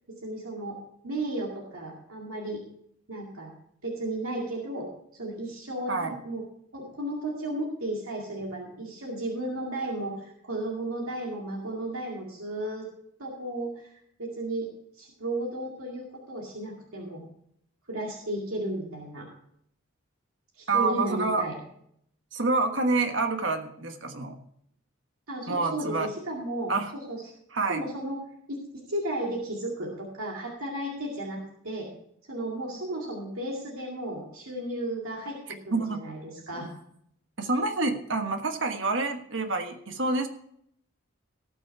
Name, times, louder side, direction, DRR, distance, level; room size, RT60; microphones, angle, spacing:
voice 1, 0.2-0.8 1.0-2.6 3.1-3.5 3.8-4.9 5.1-6.4 6.7-12.9 13.2-13.9 14.2-14.7 15.0-17.2 17.9-19.3 20.6-21.5 25.3-27.2 27.7-28.2 28.5-31.9 32.3-35.4 35.7-36.7, right 1 dB, 85° right, -2 dB, 2.3 m, -34 dB
voice 2, 20.7-21.4 22.3-24.4 25.5-26.1 26.7-26.9 27.5-27.8 35.7-36.0 37.4-40.3, right 3 dB, 60° right, 6 dB, 1.3 m, -27 dB
17.5 x 6.2 x 4.7 m, 0.70 s
head